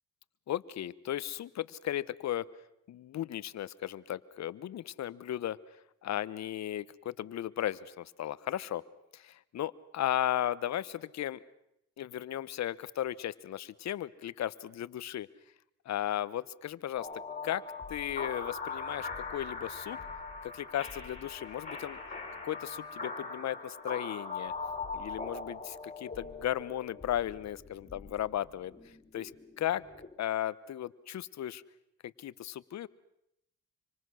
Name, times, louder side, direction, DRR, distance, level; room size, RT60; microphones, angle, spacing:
voice 1, 0.5-2.4 2.9-5.6 6.0-8.8 9.1-11.4 12.0-15.3 15.8-17.1 17.4-17.6 17.9-20.0 20.4-22.0 22.4-24.5 24.9-28.7 29.1-29.3 29.6-29.8 30.2-31.6 32.0-32.9, left 12 dB, 65° left, 18 dB, 1.0 m, -35 dB
sound 1, 17.0-30.1, left 4 dB, 25° left, 6.2 m, -41 dB
26.5 x 25.5 x 6.3 m, 0.80 s
cardioid pair, 90°, 30 cm